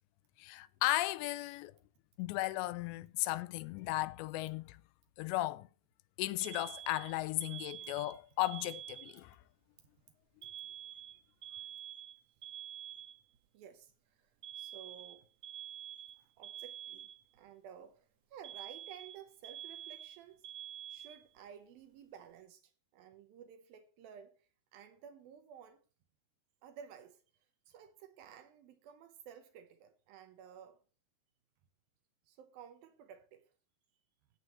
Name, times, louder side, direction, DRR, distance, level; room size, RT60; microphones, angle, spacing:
voice 1, 0.4-1.7 2.2-4.8 5.2-5.7 6.2-9.4, left 18 dB, 85° left, 2.9 m, -35 dB
Alarm, 6.4-9.4 10.4-13.4 14.4-17.4 18.4-21.4, right 11 dB, 55° right, 2.0 m, -47 dB
voice 2, 13.5-15.3 16.1-20.5 20.9-25.8 26.6-27.2 27.7-30.8 32.3-33.5, right 8 dB, 70° right, 2.4 m, -54 dB
16.5 x 8.4 x 3.1 m
omnidirectional pair, 5.0 m